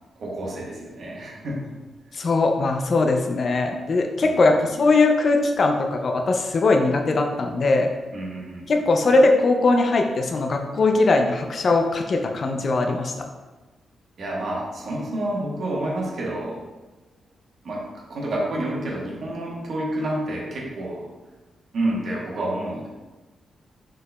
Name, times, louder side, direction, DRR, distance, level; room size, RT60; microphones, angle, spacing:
voice 1, 0.2-1.7 4.2-4.5 8.1-8.7 14.2-16.6 17.6-17.8 18.1-21.1 21.7-22.9, right 1 dB, 55° right, -4 dB, 1.2 m, -29 dB
voice 2, 2.1-7.9 8.7-13.1, left 3 dB, 40° left, 3 dB, 0.3 m, -20 dB
4.9 x 4.6 x 2.2 m, 1.2 s
wide cardioid pair, 155°, 0 cm